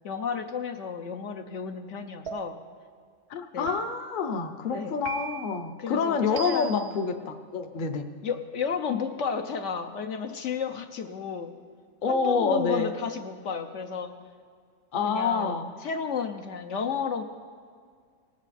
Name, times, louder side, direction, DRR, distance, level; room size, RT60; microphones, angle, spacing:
voice 1, 0.0-2.6 3.5-3.8 4.7-4.9 5.8-7.0 8.2-11.5 12.1-14.1 15.0-17.2, left 6 dB, 65° left, 6 dB, 1.0 m, -32 dB
sound 1, 2.3-2.8 3.7-4.2 5.1-5.6 6.4-6.9, right 8 dB, 60° right, 0.8 m, -38 dB
voice 2, 3.3-8.1 12.0-12.9 14.9-15.7, left 5 dB, 45° left, 5 dB, 0.8 m, -27 dB
18.5 x 8.1 x 4.1 m, 2.1 s
omnidirectional pair, 1.4 m